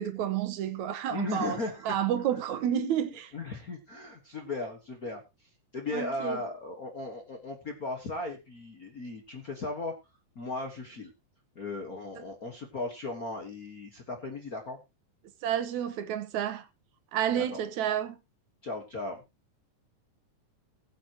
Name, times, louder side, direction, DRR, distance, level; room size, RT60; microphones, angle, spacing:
voice 1, 0.0-1.6 1.8-3.3 5.9-6.4 12.2-12.3 15.4-16.7 17.1-18.2, right 9 dB, 75° right, 2.2 m, -30 dB
voice 2, 1.1-1.9 3.3-5.2 5.7-9.9 10.3-11.1 11.5-14.8 17.3-17.6 18.6-19.2, left 3 dB, 45° left, 1.2 m, -36 dB
20.5 x 7.7 x 2.9 m
omnidirectional pair, 3.5 m